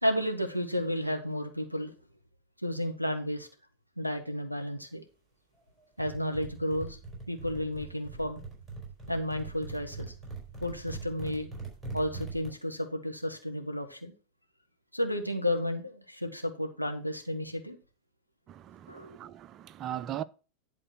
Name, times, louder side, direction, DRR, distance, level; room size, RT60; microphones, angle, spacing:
voice 1, 0.0-1.9 2.6-3.5 4.0-5.0 6.0-7.0 7.3-8.4 9.1-10.1 10.6-11.5 11.9-14.1 14.9-17.8 18.9-19.2, left 1 dB, 90° left, 1.3 m, -32 dB
sound 1, 6.0-12.5, right 4 dB, 5° right, 4.5 m, -42 dB
voice 2, 18.5-20.2, right 11 dB, 30° right, 0.5 m, -39 dB
11.0 x 4.0 x 6.1 m
figure-of-eight pair, 90°, 0 cm